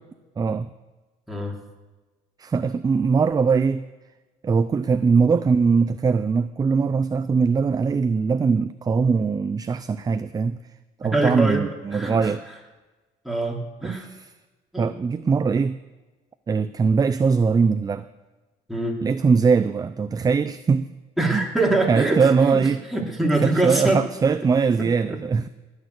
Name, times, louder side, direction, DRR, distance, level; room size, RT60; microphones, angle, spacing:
voice 1, 0.4-0.7 2.4-3.8 4.4-10.6 11.0-12.4 13.8-14.0 14.8-15.8 16.5-18.1 19.0-20.9 21.3-21.4 21.9-22.8 23.4-25.5, right 5 dB, 20° right, 12 dB, 0.5 m, -21 dB
voice 2, 11.0-11.6 11.9-12.3 13.2-14.1 14.7-14.9 18.7-19.0 21.2-22.6 22.9-24.0, right 2 dB, ahead, -1 dB, 3.1 m, -24 dB
19.5 x 6.6 x 8.1 m, 1.2 s
cardioid pair, 110°, 17 cm